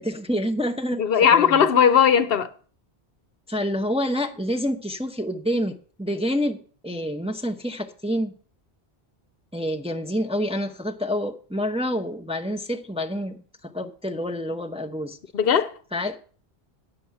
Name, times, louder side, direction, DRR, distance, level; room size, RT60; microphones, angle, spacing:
voice 1, 0.0-1.7 3.5-8.3 9.5-15.2 15.9-16.2, equal, 5° right, 0.7 m, -28 dB
voice 2, 1.0-2.5 15.3-15.7, left 8 dB, 65° left, 0.9 m, -18 dB
9.4 x 6.9 x 7.5 m
omnidirectional pair, 1.1 m